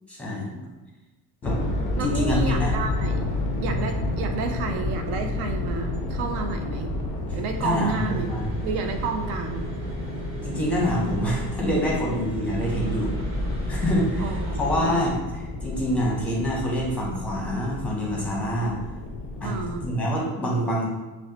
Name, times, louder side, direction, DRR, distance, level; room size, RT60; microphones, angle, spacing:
voice 1, 0.1-0.7 1.4-1.6 2.0-2.7 7.6-8.5 10.4-13.1 13.7-15.1 15.6-18.7 19.4-19.5 19.8-20.8, equal, 5° left, -4 dB, 0.7 m, -26 dB
sound 1, 1.4-20.0, left 2 dB, 20° left, 0.3 m, -31 dB
voice 2, 2.0-3.2 3.6-6.9 7.3-8.3 8.6-9.7 14.2-15.1 19.4-19.9, right 4 dB, 65° right, 5 dB, 0.6 m, -31 dB
sound 2, 7.5-14.8, right 1 dB, 30° right, 1.1 m, -34 dB
5.5 x 2.1 x 2.9 m, 1.1 s
cardioid pair, 150°, 43 cm